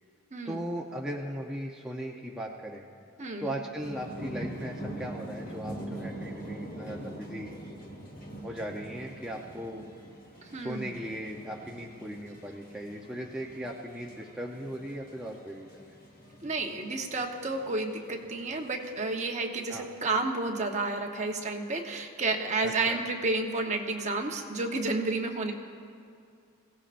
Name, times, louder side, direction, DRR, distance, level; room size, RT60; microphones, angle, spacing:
voice 1, 0.4-2.9 3.4-7.5 8.4-9.8 10.5-15.9 19.7-19.9 22.6-23.0, equal, 5° right, -3 dB, 0.7 m, -38 dB
voice 2, 3.2-3.6 10.5-10.9 16.4-25.5, right 3 dB, 30° right, 2 dB, 1.1 m, -31 dB
sound 1, 3.8-19.0, right 1 dB, 40° left, 1.7 m, -44 dB
23.0 x 17.0 x 2.6 m, 2.4 s
head